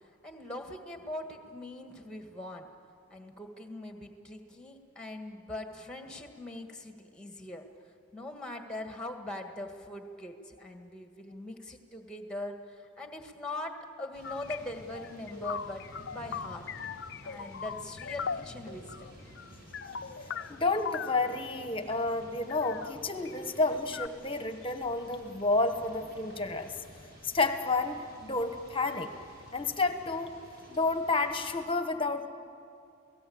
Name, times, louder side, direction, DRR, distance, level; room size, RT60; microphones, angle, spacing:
voice 1, 0.2-2.7 3.1-15.8 16.1-16.6 17.2-19.1, left 1 dB, 5° left, 5 dB, 1.8 m, -41 dB
sound 1, 14.1-31.6, equal, 50° right, 6.9 m, -52 dB
sound 2, 14.2-21.3 21.9-22.1 22.5-23.4 23.9-24.1, left 6 dB, 55° left, 0.5 m, -40 dB
voice 2, 20.3-26.7 27.2-29.1 29.5-30.3 30.7-32.3, left 3 dB, 25° left, 8 dB, 1.2 m, -30 dB
28.0 x 17.5 x 8.7 m, 2.5 s
head